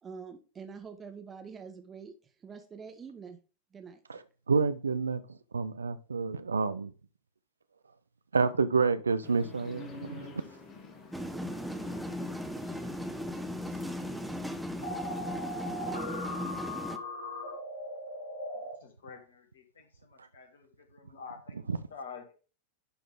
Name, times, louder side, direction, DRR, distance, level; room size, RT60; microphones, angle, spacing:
voice 1, 0.0-2.1 2.4-3.4 3.7-4.0, right 6 dB, 20° right, 1.2 m, -45 dB
voice 2, 4.5-5.2 5.5-6.9 8.3-10.4 21.7-21.8, right 4 dB, 75° right, 0.5 m, -28 dB
sound 1, 9.2-16.1, left 3 dB, 30° left, 1.3 m, -49 dB
sound 2, 11.1-17.0, equal, ahead, 0.7 m, -37 dB
sound 3, 14.8-18.7, left 1 dB, 80° left, 3.0 m, -38 dB
voice 3, 18.8-21.5 21.9-22.3, left 5 dB, 65° left, 1.8 m, -48 dB
11.5 x 3.8 x 3.7 m
figure-of-eight pair, 90°, 0 cm